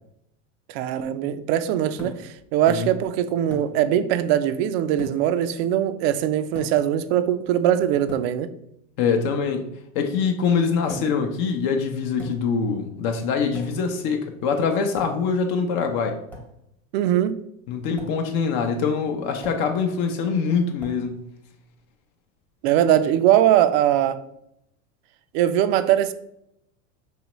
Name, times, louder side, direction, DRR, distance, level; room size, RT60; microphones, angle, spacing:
voice 1, 0.7-8.5 16.9-17.4 22.6-24.2 25.3-26.1, right 11 dB, 55° right, 0.4 m, -21 dB
sound 1, 2.0-2.4 3.5-3.8 5.0-5.4 6.6-6.9 8.1-8.4 10.9-11.3 12.2-12.6 13.5-13.9 15.0-15.4 16.3-16.6 18.0-18.2 19.4-19.8 20.8-21.1, equal, 5° left, 0.7 m, -38 dB
voice 2, 9.0-9.7 9.9-16.2 17.7-21.3, left 5 dB, 50° left, 0.6 m, -24 dB
5.5 x 3.0 x 3.0 m
supercardioid pair, 135°, 39 cm